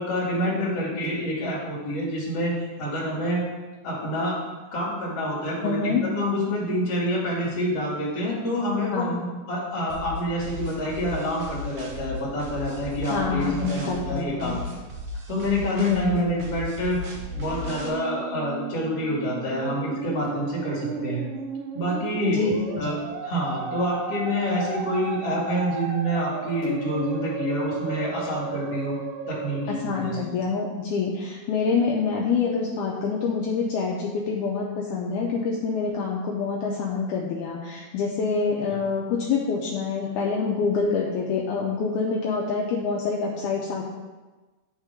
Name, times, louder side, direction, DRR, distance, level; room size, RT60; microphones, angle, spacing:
voice 1, 0.0-3.4 3.8-4.4 4.7-9.1 9.5-14.6 15.3-17.0 17.3-21.2 21.7-22.4 22.8-22.9 23.2-29.0 29.3-30.2 38.7-38.8, equal, 55° left, -5 dB, 3.0 m, -27 dB
voice 2, 5.6-6.0 8.9-9.3 13.1-14.6 15.8-16.4 22.2-22.9 29.7-43.8, left 4 dB, 80° left, -2 dB, 2.2 m, -26 dB
sound 1, 9.9-17.9, equal, 65° right, 2.1 m, -35 dB
Musical instrument, 17.2-30.6, right 6 dB, 85° right, 1.3 m, -35 dB
10.0 x 3.7 x 4.9 m, 1.2 s
omnidirectional pair, 3.5 m